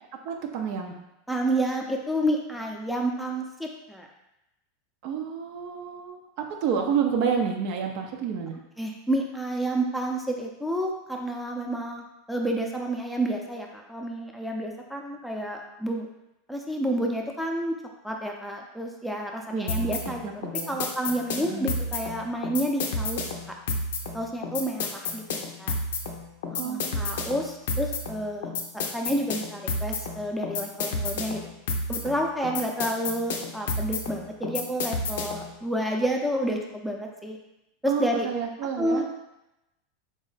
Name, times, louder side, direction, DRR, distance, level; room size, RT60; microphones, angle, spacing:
voice 1, 0.2-0.9 5.0-8.6 19.5-20.0 20.2-20.8 21.4-21.7 26.6-27.0 37.9-39.0, right 7 dB, 60° right, 3 dB, 0.5 m, -29 dB
voice 2, 1.3-4.1 8.8-16.1 16.5-17.7 18.0-20.4 20.7-23.5 24.1-25.7 26.6-31.4 31.9-37.4 37.8-38.3 38.8-39.0, right 1 dB, ahead, 0 dB, 0.5 m, -30 dB
sound 1, 19.7-35.5, left 3 dB, 80° left, 0.5 m, -31 dB
3.5 x 2.1 x 3.9 m, 0.90 s
hypercardioid pair, 110°, 0 cm